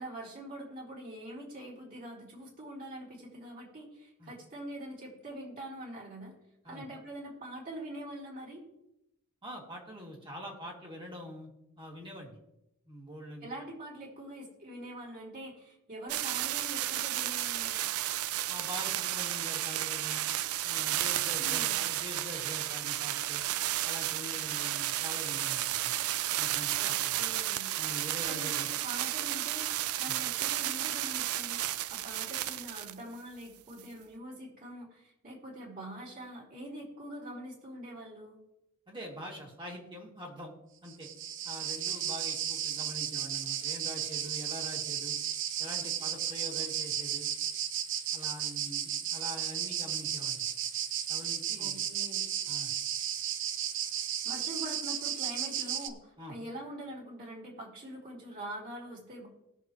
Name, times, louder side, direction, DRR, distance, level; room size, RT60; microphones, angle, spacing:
voice 1, 0.0-6.3 6.6-8.6 13.4-17.8 21.4-21.8 26.8-27.7 28.3-38.4 51.6-52.3 54.2-59.3, right 1 dB, 40° right, -4 dB, 3.8 m, -44 dB
voice 2, 9.4-11.5 11.8-12.4 12.9-13.5 18.5-20.2 20.6-23.4 23.8-25.9 26.4-27.2 27.8-28.7 30.0-30.1 38.9-40.5 40.8-41.1 41.4-45.1 45.6-47.3 48.1-50.4 51.1-51.8 52.5-52.7 56.2-56.3, equal, 25° right, -1 dB, 2.6 m, -44 dB
sound 1, 16.1-32.9 33.8-33.9, right 13 dB, 80° right, 0.4 m, -32 dB
sound 2, 40.9-55.9, right 10 dB, 60° right, 0.8 m, -34 dB
20.0 x 6.7 x 3.2 m, 0.88 s
head